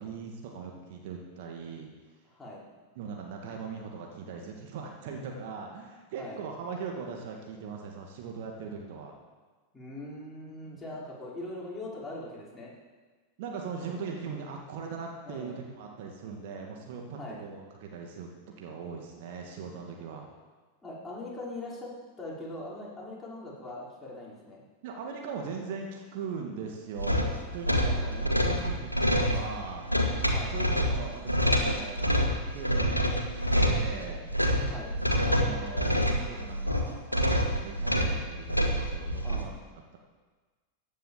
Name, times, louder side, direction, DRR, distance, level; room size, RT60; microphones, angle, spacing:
voice 1, 0.0-1.9 3.0-9.2 10.7-10.8 13.4-20.3 24.8-29.9 30.5-34.3 35.2-40.0, right 5 dB, 50° right, 1 dB, 2.2 m, -40 dB
voice 2, 2.3-2.7 6.2-6.4 9.7-12.7 15.3-15.6 17.2-17.4 20.8-24.6 27.9-28.1 30.3-30.6 34.7-34.9 39.2-39.5, left 1 dB, 10° left, -6 dB, 5.6 m, -41 dB
sound 1, 27.0-39.4, equal, 90° left, 1.8 m, -27 dB
15.5 x 10.0 x 7.7 m, 1.4 s
figure-of-eight pair, 90°, 0 cm